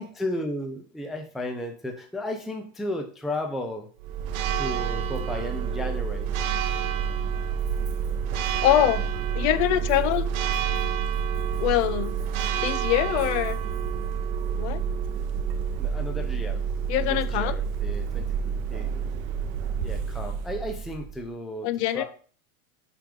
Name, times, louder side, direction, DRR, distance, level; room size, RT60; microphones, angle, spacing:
voice 1, 0.0-3.9 4.6-6.3 15.8-16.6 17.0-18.9 19.8-22.0, left 1 dB, ahead, 4 dB, 0.4 m, -34 dB
Church bell, 4.0-21.3, right 7 dB, 70° right, 0.8 m, -28 dB
voice 2, 8.6-9.1 9.3-10.2 11.6-12.2 12.6-13.6 14.6-14.8 16.9-17.5 21.6-22.0, left 13 dB, 55° left, 12 dB, 0.7 m, -23 dB
5.8 x 3.5 x 5.0 m, 0.41 s
supercardioid pair, 130°, 41 cm